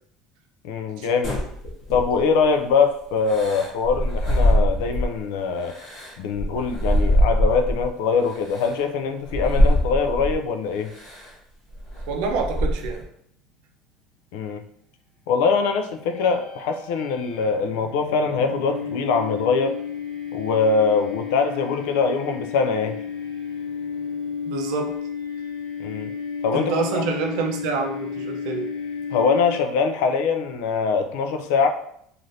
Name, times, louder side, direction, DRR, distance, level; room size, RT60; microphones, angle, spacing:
voice 1, 0.6-1.4 1.9-5.7 6.2-10.9 14.3-14.6 15.3-19.8 20.3-23.0 25.8-26.1 26.4-27.0 29.1-31.7, left 5 dB, 85° left, 6 dB, 0.4 m, -23 dB
sound 1, 1.2-2.4 3.3-5.2 5.6-7.9 8.5-8.7 9.3-10.4 11.0-11.3 11.7-13.0, equal, 35° left, 0.8 m, -23 dB
voice 2, 12.1-13.0 24.5-25.0 26.5-28.7, right 4 dB, 60° right, 4 dB, 0.5 m, -27 dB
sound 2, 15.9-30.0, left 6 dB, 70° left, 0.9 m, -33 dB
3.2 x 2.5 x 2.6 m, 0.69 s
cardioid pair, 180°, 0 cm